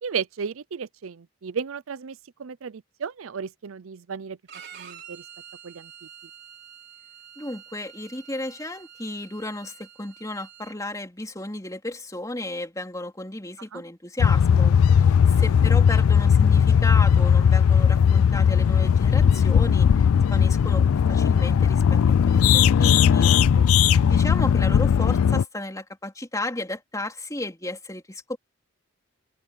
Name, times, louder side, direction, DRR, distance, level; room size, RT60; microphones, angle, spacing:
voice 1, 0.0-4.4 4.7-5.2 5.6-5.9 13.7-13.8 15.3-15.4 23.5-23.7, right 6 dB, 75° right, 0.5 m, -34 dB
Bowed string instrument, 4.5-10.7, right 8 dB, 50° right, 4.5 m, -47 dB
voice 2, 7.4-23.4 24.1-28.4, left 1 dB, 15° left, 3.7 m, -34 dB
sound 1, 14.2-25.4, left 7 dB, 85° left, 0.4 m, -18 dB
head